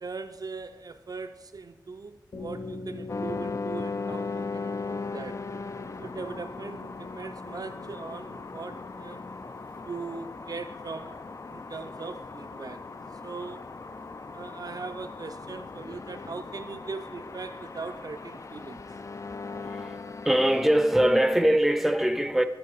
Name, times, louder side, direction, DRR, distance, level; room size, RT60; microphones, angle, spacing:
voice 1, 0.0-5.4 6.0-9.2 9.8-11.2 11.5-12.9 13.2-13.7 14.3-18.8, right 4 dB, 55° right, 0.4 m, -40 dB
sound 1, 2.3-9.8, left 2 dB, 75° left, 1.3 m, -42 dB
sound 2, 3.1-21.6, left 4 dB, 40° left, 0.3 m, -38 dB
voice 2, 19.6-20.0 20.2-22.4, right 1 dB, 5° right, 0.6 m, -22 dB
12.5 x 4.4 x 4.0 m
cardioid pair, 50°, 8 cm